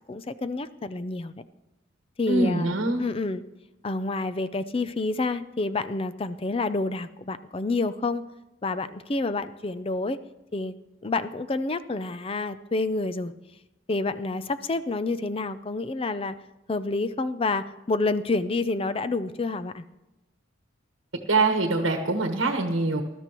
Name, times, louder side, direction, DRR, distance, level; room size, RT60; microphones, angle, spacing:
voice 1, 0.1-1.4 2.2-2.7 3.0-3.4 3.8-8.2 8.6-10.2 10.5-10.7 11.0-13.3 13.9-16.4 16.7-19.9, left 3 dB, 30° left, 12 dB, 0.4 m, -28 dB
voice 2, 2.3-3.0 21.3-23.0, right 2 dB, 65° right, 5 dB, 1.2 m, -24 dB
20.0 x 12.5 x 3.0 m, 1.0 s
head